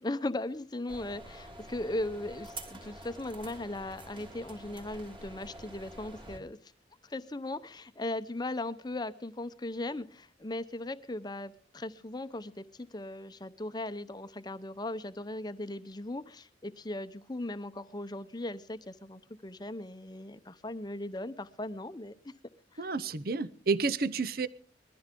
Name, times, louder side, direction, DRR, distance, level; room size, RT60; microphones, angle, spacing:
voice 1, 0.0-6.6 7.0-22.1 22.7-22.9, left 2 dB, 20° left, 13 dB, 0.7 m, -38 dB
sound 1, 0.9-6.4, right 1 dB, 25° right, 2.9 m, -47 dB
voice 2, 22.8-24.5, right 4 dB, 55° right, 16 dB, 0.7 m, -30 dB
21.5 x 14.0 x 3.8 m, 0.42 s
head